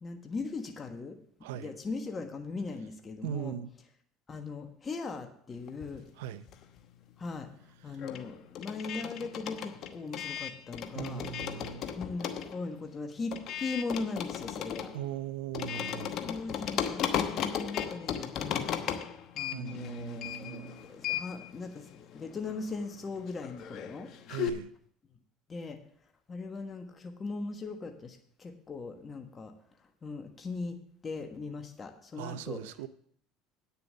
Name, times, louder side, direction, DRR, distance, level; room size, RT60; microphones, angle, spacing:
voice 1, 0.0-1.2 1.5-3.6 4.3-6.0 7.2-7.5 7.8-11.2 11.9-14.9 16.2-18.7 19.3-24.1 25.5-25.8 26.3-29.5 30.0-30.8 31.0-32.6, left 3 dB, 30° left, 5 dB, 1.3 m, -39 dB
voice 2, 1.4-1.7 3.2-3.7 6.2-6.4 7.9-8.0 10.9-11.9 14.9-16.1 19.5-20.9 24.3-24.7 32.2-32.9, right 10 dB, 85° right, 15 dB, 0.5 m, -39 dB
sound 1, 5.7-6.9 7.2-24.5, left 9 dB, 55° left, 1.0 m, -37 dB
9.3 x 6.9 x 6.7 m, 0.62 s
supercardioid pair, 85°, 0 cm